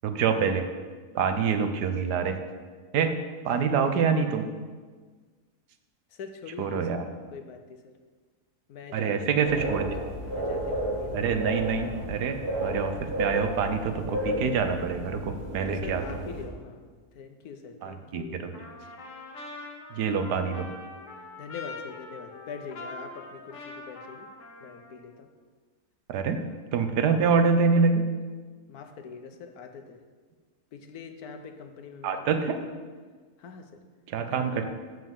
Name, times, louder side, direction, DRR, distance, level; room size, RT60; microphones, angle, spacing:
voice 1, 0.0-0.6 1.1-2.4 2.9-3.1 3.4-4.4 6.6-7.1 8.9-9.8 11.1-16.0 17.8-18.5 19.9-20.7 26.1-26.4 26.7-28.0 32.0-32.6 34.1-34.6, right 5 dB, 90° right, 7 dB, 1.4 m, -26 dB
voice 2, 6.1-7.0 7.3-7.9 8.7-11.3 15.7-18.4 21.4-24.3 24.6-25.3 28.7-30.0 30.7-32.8 33.4-33.8 34.3-34.6, left 5 dB, 70° left, 6 dB, 1.3 m, -43 dB
sound 1, 9.4-16.4, equal, 65° right, 2.5 m, -32 dB
Trumpet, 18.5-25.1, left 2 dB, 55° left, 1.3 m, -43 dB
7.6 x 5.9 x 7.3 m, 1.5 s
omnidirectional pair, 1.7 m